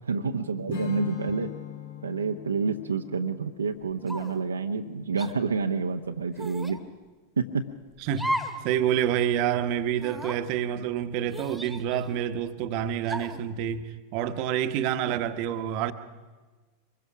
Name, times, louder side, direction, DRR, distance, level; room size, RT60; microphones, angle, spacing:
voice 1, 0.1-1.5 2.0-6.8 7.4-7.7, right 4 dB, 75° right, 0.8 m, -28 dB
Strum, 0.7-6.0, left 10 dB, 70° left, 4.8 m, -42 dB
sound 1, 4.1-4.5 5.2-5.3 6.4-6.8 8.1-8.6 9.0-9.1 9.9-10.4 11.3-12.2 13.0-13.5, equal, ahead, 1.7 m, -34 dB
voice 2, 8.0-8.4 8.6-15.9, right 10 dB, 45° right, 1.1 m, -28 dB
24.5 x 21.0 x 6.0 m
figure-of-eight pair, 90°, 0 cm